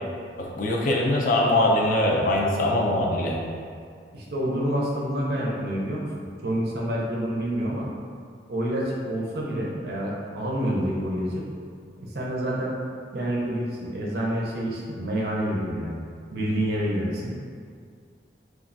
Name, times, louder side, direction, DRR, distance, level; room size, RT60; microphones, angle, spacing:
voice 1, 0.4-3.4, left 1 dB, 50° left, -1 dB, 0.4 m, -22 dB
voice 2, 4.1-7.9 8.5-11.5 12.0-12.7 13.1-16.0 16.3-17.3, equal, 65° right, -4 dB, 0.5 m, -28 dB
3.0 x 2.4 x 2.5 m, 2.2 s
head